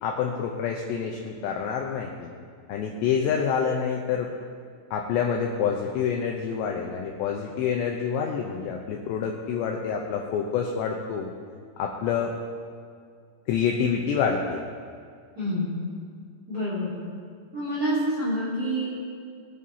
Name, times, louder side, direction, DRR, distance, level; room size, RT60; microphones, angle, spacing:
voice 1, 0.0-2.3 2.7-4.3 4.9-11.3 11.8-12.3 13.5-14.6, left 7 dB, 80° left, 1 dB, 2.7 m, -27 dB
voice 2, 15.4-15.7 16.5-16.9 17.5-18.9, equal, 35° right, -10 dB, 3.0 m, -27 dB
22.5 x 7.6 x 2.8 m, 2.2 s
omnidirectional pair, 5.6 m